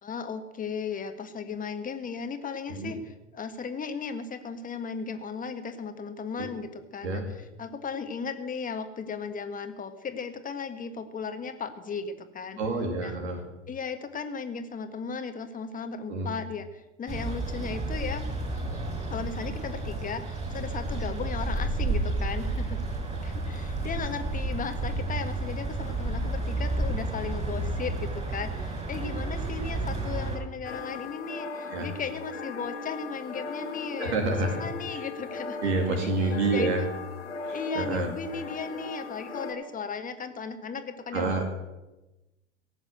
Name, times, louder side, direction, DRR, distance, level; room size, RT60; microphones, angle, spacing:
voice 1, 0.0-7.2 7.6-12.6 13.0-13.1 13.7-18.3 19.1-22.8 23.2-34.2 34.6-36.1 36.5-36.9 37.5-41.4, left 5 dB, 25° left, 8 dB, 1.6 m, -36 dB
voice 2, 12.6-13.4 16.1-16.3 31.7-31.9 34.0-34.6 34.9-35.1 35.6-36.8 37.4-38.1 41.1-41.4, right 3 dB, 65° right, 3 dB, 2.4 m, -28 dB
sound 1, 17.1-30.4, right 2 dB, 20° right, 4.7 m, -31 dB
sound 2, 30.6-39.5, left 4 dB, 80° left, 2.2 m, -38 dB
17.5 x 7.3 x 8.0 m, 1.0 s
figure-of-eight pair, 80°, 35 cm